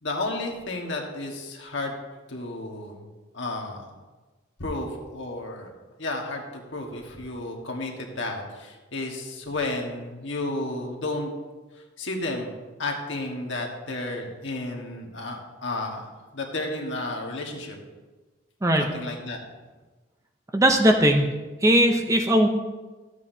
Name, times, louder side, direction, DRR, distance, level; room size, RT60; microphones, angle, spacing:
voice 1, 0.0-1.9 2.3-3.0 3.3-3.9 4.6-5.7 6.0-11.3 11.7-12.5 12.8-17.8 18.8-19.4, left 2 dB, 65° left, 1 dB, 1.4 m, -32 dB
voice 2, 20.5-21.3 21.6-22.5, right 1 dB, 15° right, 4 dB, 0.6 m, -19 dB
13.0 x 8.1 x 2.7 m, 1.3 s
head